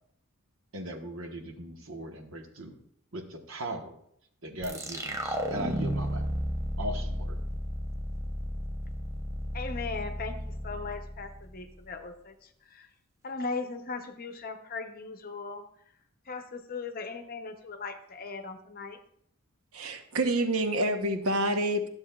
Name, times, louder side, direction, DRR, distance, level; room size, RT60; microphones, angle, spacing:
voice 1, 0.7-2.8 3.1-3.9 4.4-6.2 6.8-7.4, right 1 dB, 65° right, 3 dB, 1.2 m, -38 dB
sound 1, 4.6-11.9, equal, 15° right, 0.7 m, -34 dB
voice 2, 9.5-12.3 12.7-12.9 13.2-15.6 16.3-19.0, left 4 dB, 45° left, 7 dB, 0.7 m, -38 dB
voice 3, 19.7-21.9, right 1 dB, 90° right, 6 dB, 0.9 m, -27 dB
12.0 x 7.1 x 2.3 m, 0.70 s
head